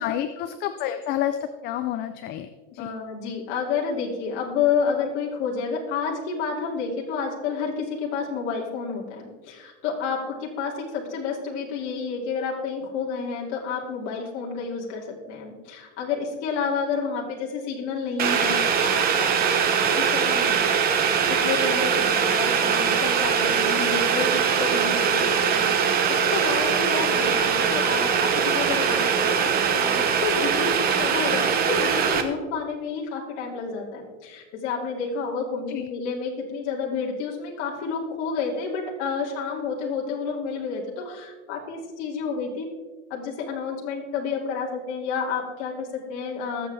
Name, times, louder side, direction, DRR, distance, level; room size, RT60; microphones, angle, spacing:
voice 1, 0.0-2.9 35.7-35.9, left 11 dB, 30° left, 9 dB, 0.5 m, -29 dB
voice 2, 2.8-25.7 26.1-42.7 43.1-46.7, left 5 dB, 50° left, -3 dB, 2.6 m, -30 dB
Boiling, 18.2-32.2, right 7 dB, 25° right, 1.1 m, -22 dB
20.5 x 7.5 x 3.4 m, 1.4 s
supercardioid pair, 150°, 34 cm